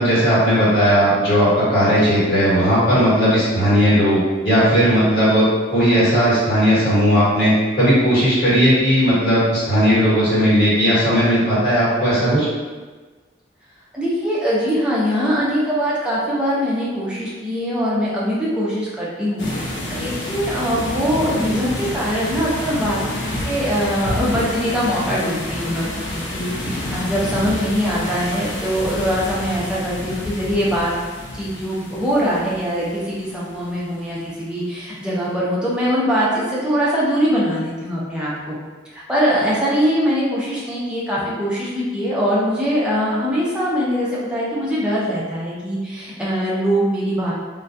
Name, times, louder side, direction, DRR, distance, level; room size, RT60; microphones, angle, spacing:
voice 1, 0.0-12.5 26.6-26.7, equal, 55° left, -11 dB, 1.2 m, -16 dB
voice 2, 13.9-30.9 31.3-38.6 38.9-47.3, equal, 5° right, -7 dB, 0.5 m, -22 dB
sound 1, 19.4-34.0, left 1 dB, 75° left, 0.5 m, -29 dB
2.2 x 2.2 x 2.6 m, 1.3 s
head